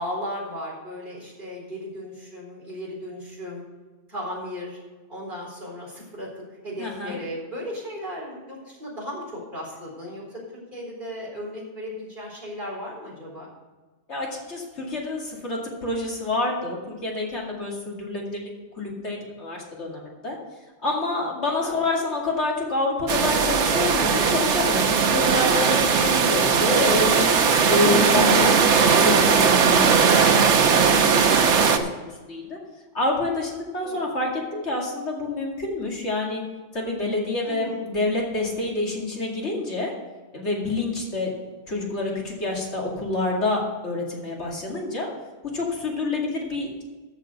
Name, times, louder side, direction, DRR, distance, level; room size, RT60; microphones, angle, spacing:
voice 1, 0.0-3.6 4.1-4.8 5.1-10.4 10.7-13.5 21.6-21.8 22.2-22.3 33.8-34.0 37.4-37.8, equal, 45° right, -5 dB, 4.5 m, -36 dB
voice 2, 6.8-7.2 14.1-18.5 18.8-20.4 20.8-27.3 27.7-32.6 32.9-36.4 36.7-39.9 40.3-41.3 41.7-45.1 45.5-46.8, left 2 dB, 75° left, -2 dB, 2.7 m, -27 dB
sound 1, 23.1-31.8, right 6 dB, 80° right, 1.2 m, -19 dB
13.5 x 5.2 x 6.7 m, 1.3 s
omnidirectional pair, 1.2 m